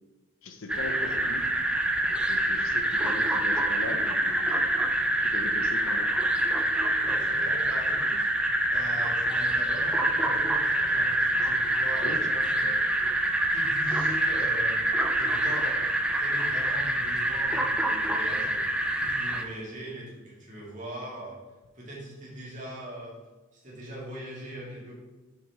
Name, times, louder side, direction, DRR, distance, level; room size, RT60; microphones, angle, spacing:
voice 1, 0.4-1.5 2.3-4.6 5.2-6.1 12.0-12.3, left 2 dB, 75° left, 6 dB, 0.7 m, -39 dB
sound 1, 0.7-19.4, right 1 dB, 5° right, 0.3 m, -26 dB
voice 2, 7.0-8.3 8.7-12.9 13.5-14.8 15.1-18.7 18.9-21.4 21.7-23.2 23.5-24.9, equal, 35° right, -5 dB, 2.0 m, -41 dB
6.5 x 5.6 x 3.5 m, 1.2 s
head